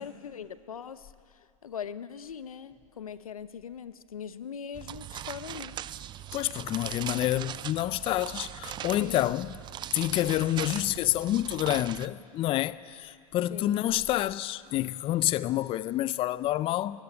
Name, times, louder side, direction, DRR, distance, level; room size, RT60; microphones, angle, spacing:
voice 1, 0.0-5.8 9.0-9.3 13.5-13.8, left 7 dB, 90° left, 0.9 m, -41 dB
sound 1, 4.7-12.1, right 11 dB, 25° right, 0.5 m, -40 dB
voice 2, 6.3-9.5 9.9-17.0, left 14 dB, 30° left, 0.5 m, -28 dB
22.5 x 16.5 x 9.8 m
hypercardioid pair, 105°, 18 cm